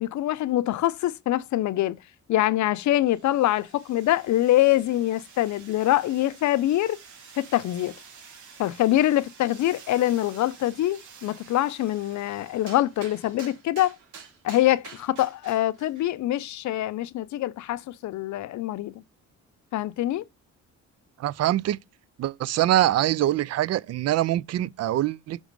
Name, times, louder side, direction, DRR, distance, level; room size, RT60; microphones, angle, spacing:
voice 1, 0.0-2.0 2.3-7.0 7.4-7.9 8.6-14.0 14.4-18.9 19.7-20.2, left 14 dB, 70° left, 0.6 m, -24 dB
sound 1, 3.0-16.1, right 6 dB, 70° right, 1.6 m, -49 dB
voice 2, 21.2-21.8 22.2-25.4, right 13 dB, 55° right, 0.4 m, -24 dB
6.1 x 3.6 x 5.2 m
cardioid pair, 90°, 30 cm